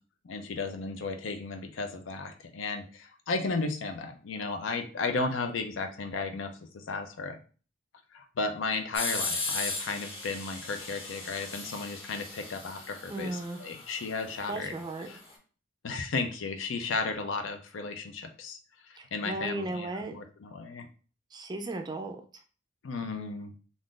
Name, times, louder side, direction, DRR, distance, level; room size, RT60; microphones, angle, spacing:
voice 1, 0.2-7.4 8.1-14.7 15.1-15.2 15.8-18.6 19.1-20.9 22.8-23.5, left 4 dB, 85° left, 6 dB, 0.5 m, -34 dB
sound 1, 8.9-15.3, left 3 dB, 30° left, 0.8 m, -37 dB
voice 2, 13.1-13.6 14.5-15.1 19.0-20.2 21.3-22.2, right 2 dB, 20° right, 4 dB, 0.3 m, -35 dB
2.5 x 2.4 x 3.6 m, 0.38 s
head